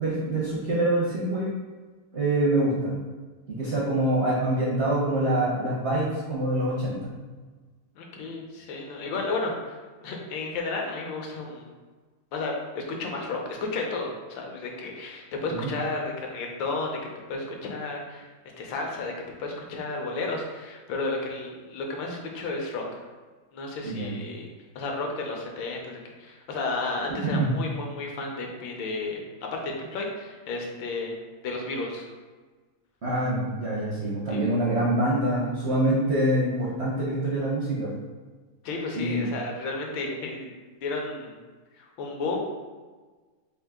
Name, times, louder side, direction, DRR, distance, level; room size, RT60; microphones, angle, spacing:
voice 1, 0.0-1.5 2.1-2.9 3.5-7.2 15.5-15.7 23.8-24.1 27.2-27.5 33.0-37.9 39.0-39.2, right 1 dB, 70° right, -7 dB, 0.6 m, -25 dB
voice 2, 8.0-11.7 12.3-17.0 17.3-18.3 18.6-19.1 19.4-23.0 23.5-24.5 24.7-29.2 29.5-31.2 31.4-32.1 34.3-34.5 38.6-40.5 40.8-41.4 41.7-42.4, left 3 dB, 75° left, 0 dB, 1.4 m, -32 dB
3.7 x 2.7 x 3.5 m, 1.4 s
omnidirectional pair, 2.1 m